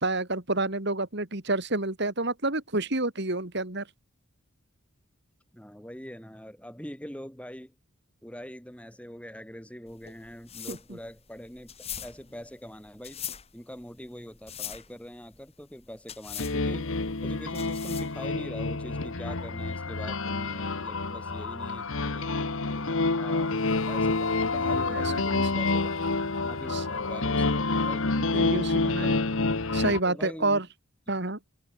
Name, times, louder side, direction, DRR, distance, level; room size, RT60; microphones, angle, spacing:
voice 1, 0.0-3.9 10.7-10.8 24.9-25.4 26.7-26.8 28.2-29.2 29.7-30.6 31.1-31.4, right 2 dB, 50° right, 2.5 m, -29 dB
voice 2, 5.5-7.8 8.2-13.2 13.5-22.4 22.7-23.6 23.9-25.9 26.4-29.3 30.0-30.6, equal, 5° left, 7.7 m, -43 dB
Sweeping the floor, 9.9-18.3, left 9 dB, 30° left, 4.0 m, -42 dB
sound 1, 16.4-30.0, left 3 dB, 65° left, 1.3 m, -28 dB
head